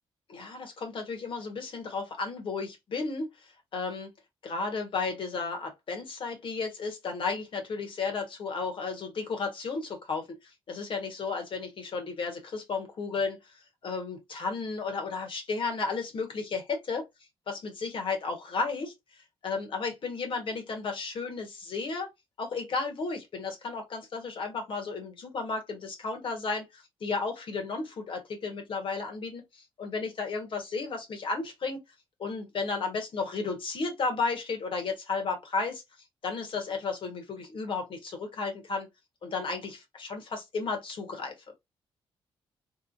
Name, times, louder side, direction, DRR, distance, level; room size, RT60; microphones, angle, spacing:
voice 1, 0.3-4.1 4.4-13.4 13.8-17.0 17.5-22.1 22.4-31.8 32.2-35.8 36.2-38.9 39.2-41.3, left 4 dB, 60° left, 1.5 m, -33 dB
3.4 x 3.2 x 2.7 m
cardioid pair, 90°, 10 cm